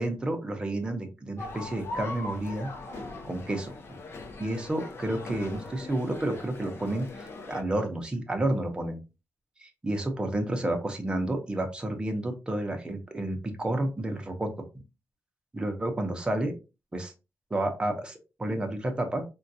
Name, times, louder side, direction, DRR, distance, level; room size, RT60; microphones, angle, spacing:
voice 1, 0.0-2.7 3.2-4.0 4.4-9.0 9.6-14.5 15.5-16.5 16.9-17.1 17.5-19.2, right 1 dB, 20° right, 4 dB, 0.6 m, -30 dB
sound 1, 1.4-7.6, left 2 dB, 50° left, 0.6 m, -40 dB
3.7 x 2.2 x 2.6 m, 0.28 s
wide cardioid pair, 155°, 5 cm